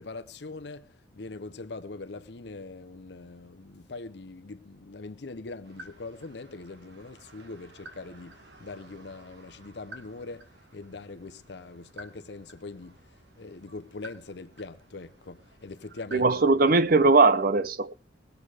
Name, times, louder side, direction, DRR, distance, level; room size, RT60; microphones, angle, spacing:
voice 1, 0.0-13.0 13.4-16.6, left 3 dB, 65° left, 0.7 m, -42 dB
sound 1, 5.6-17.1, right 2 dB, 70° right, 2.5 m, -52 dB
voice 2, 16.1-17.9, right 3 dB, 50° right, 0.6 m, -20 dB
20.5 x 8.1 x 4.8 m
head